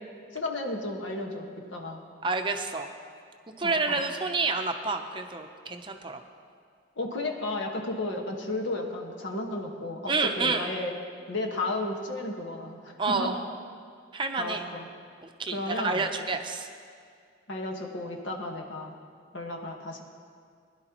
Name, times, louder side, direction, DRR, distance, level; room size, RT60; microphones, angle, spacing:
voice 1, 0.3-2.0 3.6-4.0 7.0-10.9 11.3-13.4 14.4-14.9 15.5-16.1 17.5-19.0 19.3-20.0, left 2 dB, 80° left, 1 dB, 1.5 m, -33 dB
voice 2, 2.2-2.9 3.6-6.2 10.1-10.7 13.0-13.3 14.1-14.6 15.2-16.7, right 3 dB, 25° right, 5 dB, 0.6 m, -29 dB
21.0 x 11.0 x 3.0 m, 2.2 s
head